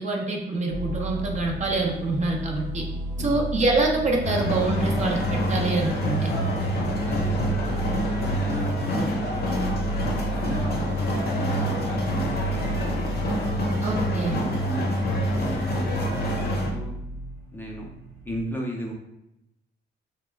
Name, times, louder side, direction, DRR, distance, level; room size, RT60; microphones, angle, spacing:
voice 1, 0.0-2.8 3.2-6.3 13.8-14.4, right 2 dB, 35° right, 1 dB, 0.6 m, -25 dB
sound 1, 0.7-18.4, equal, 80° right, 0.7 m, -35 dB
sound 2, 4.2-16.7, equal, 50° left, 0.7 m, -26 dB
voice 2, 7.0-13.1 14.1-17.0 17.5-17.9 18.2-18.9, equal, 10° left, -2 dB, 0.5 m, -36 dB
2.8 x 2.1 x 3.3 m, 0.86 s
cardioid pair, 90°, 20 cm